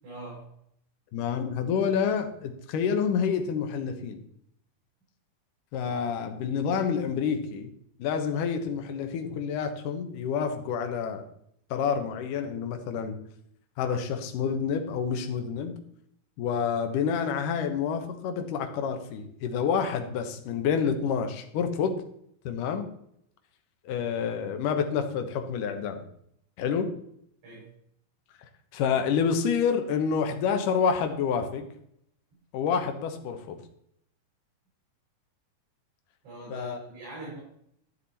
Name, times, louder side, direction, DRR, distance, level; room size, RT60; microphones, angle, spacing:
voice 1, 0.0-0.5 27.4-27.7 36.2-37.4, right 2 dB, 50° right, -7 dB, 6.0 m, -42 dB
voice 2, 1.1-4.2 5.7-7.7 8.0-11.2 11.7-13.2 13.8-15.7 16.4-22.0 22.4-22.9 23.9-26.0 26.6-26.9 28.7-31.7 32.5-33.6 36.5-36.8, left 6 dB, 70° left, 6 dB, 2.4 m, -28 dB
12.0 x 7.4 x 4.2 m, 0.71 s
omnidirectional pair, 4.4 m